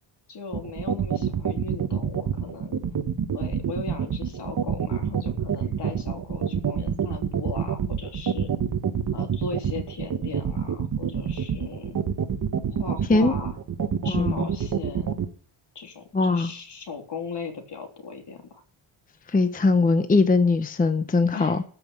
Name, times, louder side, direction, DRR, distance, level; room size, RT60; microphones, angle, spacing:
voice 1, 0.3-2.8 3.3-8.5 9.1-12.0 12.7-13.6 14.0-15.2 15.7-18.6 21.3-21.6, left 5 dB, 55° left, 3.3 m, -38 dB
sound 1, 0.5-15.3, right 8 dB, 40° right, 1.2 m, -26 dB
voice 2, 14.1-14.5 16.1-16.5 19.3-21.6, left 3 dB, 15° left, 0.7 m, -21 dB
14.0 x 5.7 x 8.4 m
wide cardioid pair, 170°, 49 cm